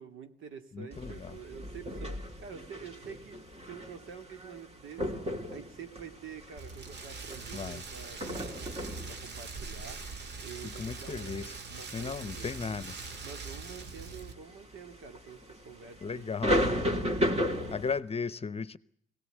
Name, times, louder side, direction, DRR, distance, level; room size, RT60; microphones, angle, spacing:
voice 1, 0.0-12.7 13.2-17.5, right 7 dB, 80° right, 2.6 m, -48 dB
voice 2, 0.7-1.4 7.5-7.8 10.6-11.5 11.9-13.0 16.0-16.6 17.7-18.8, left 5 dB, 30° left, 0.9 m, -36 dB
sound 1, 0.9-18.0, equal, 30° right, 3.5 m, -36 dB
Rain, 6.6-14.3, right 4 dB, 60° right, 2.0 m, -42 dB
22.5 x 18.0 x 9.2 m
cardioid pair, 90°, 20 cm